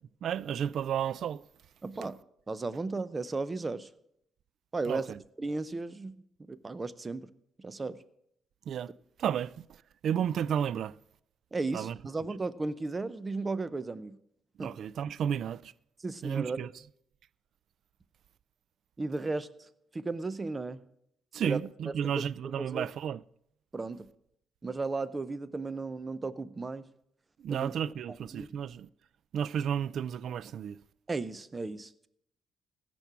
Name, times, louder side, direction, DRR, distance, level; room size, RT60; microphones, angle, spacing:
voice 1, 0.2-1.4 2.0-2.1 4.8-5.2 8.7-8.9 9.2-9.7 10.0-10.9 11.7-12.0 14.6-15.7 16.2-16.7 21.3-23.2 27.4-28.9 29.3-30.8, right 8 dB, 65° right, 0.3 m, -32 dB
voice 2, 1.8-2.2 2.5-3.9 4.7-5.1 5.4-6.2 6.5-7.3 7.6-8.0 11.5-14.2 14.6-14.8 16.0-16.6 19.0-19.5 19.9-20.8 21.4-21.6 22.1-22.3 22.6-22.9 23.7-24.1 24.6-26.8 27.5-27.7 28.3-28.6 31.1-32.1, right 3 dB, 25° right, 0.6 m, -35 dB
15.5 x 6.1 x 6.0 m
cardioid pair, 90°, 0 cm